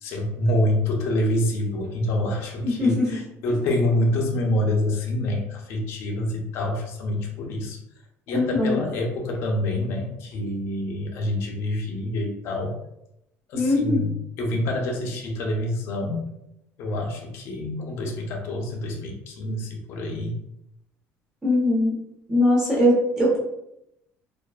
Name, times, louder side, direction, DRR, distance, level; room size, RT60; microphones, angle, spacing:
voice 1, 0.0-7.8 8.3-12.8 13.5-16.3 16.8-20.4, left 1 dB, 55° left, 1 dB, 0.5 m, -26 dB
voice 2, 2.6-3.1 8.3-8.8 13.5-14.0 21.4-21.9 22.3-23.4, left 1 dB, 15° right, -6 dB, 0.8 m, -20 dB
2.3 x 2.2 x 2.3 m, 0.82 s
cardioid pair, 165°, 5 cm